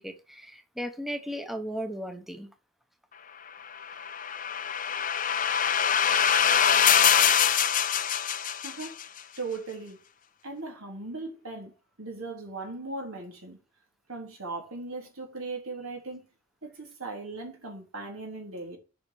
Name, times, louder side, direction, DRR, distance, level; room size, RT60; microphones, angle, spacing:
voice 1, 0.0-2.5, equal, ahead, 0.9 m, -36 dB
sound 1, 3.8-9.0, left 8 dB, 40° left, 0.7 m, -24 dB
voice 2, 8.6-9.0 9.4-10.0 10.4-13.6 14.1-16.3 16.6-18.8, right 3 dB, 80° right, 3.8 m, -38 dB
7.8 x 5.7 x 7.0 m
head